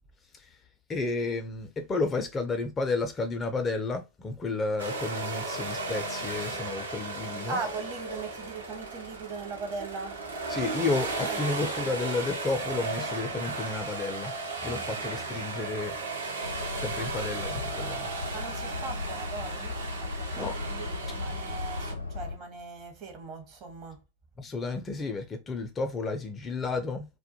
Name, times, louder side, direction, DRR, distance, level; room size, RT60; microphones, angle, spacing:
voice 1, 0.9-7.6 10.5-14.3 14.6-16.0 16.8-18.1 20.3-20.6 24.4-27.1, left 3 dB, 20° left, 0.4 m, -32 dB
sound 1, 4.8-21.9, right 3 dB, 70° right, 0.6 m, -35 dB
voice 2, 7.5-10.2 11.3-11.4 14.6-14.9 18.3-24.0, right 4 dB, 40° right, 0.8 m, -39 dB
sound 2, 16.4-22.4, left 4 dB, 85° left, 0.5 m, -37 dB
2.1 x 2.1 x 2.7 m
figure-of-eight pair, 90°, 0 cm